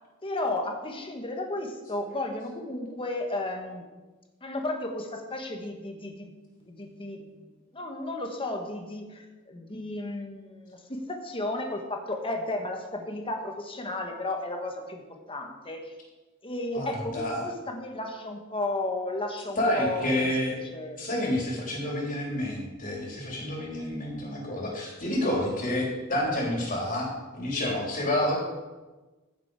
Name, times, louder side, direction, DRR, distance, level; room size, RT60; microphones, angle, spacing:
voice 1, 0.2-3.8 4.4-6.3 6.6-7.3 7.7-16.0 16.4-20.3 20.6-21.1, left 2 dB, 25° left, 3 dB, 1.6 m, -34 dB
voice 2, 16.7-17.5 19.6-20.5 21.0-27.1 27.3-28.4, left 1 dB, 40° left, -2 dB, 3.6 m, -29 dB
15.5 x 7.5 x 4.9 m, 1.2 s
head